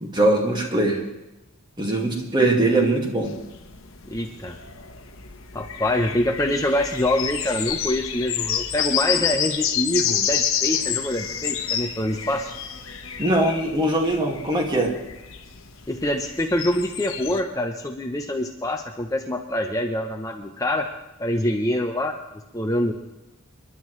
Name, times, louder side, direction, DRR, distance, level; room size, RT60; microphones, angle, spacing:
voice 1, 0.0-1.0 1.8-3.3 13.2-14.9, right 2 dB, 20° right, 1 dB, 2.1 m, -21 dB
sound 1, 3.2-17.4, left 9 dB, 85° left, 1.2 m, -29 dB
voice 2, 4.1-4.6 5.5-12.6 15.9-20.9 21.2-22.2 22.5-22.9, left 1 dB, 15° left, 3 dB, 0.8 m, -25 dB
29.0 x 11.0 x 3.2 m, 0.98 s
head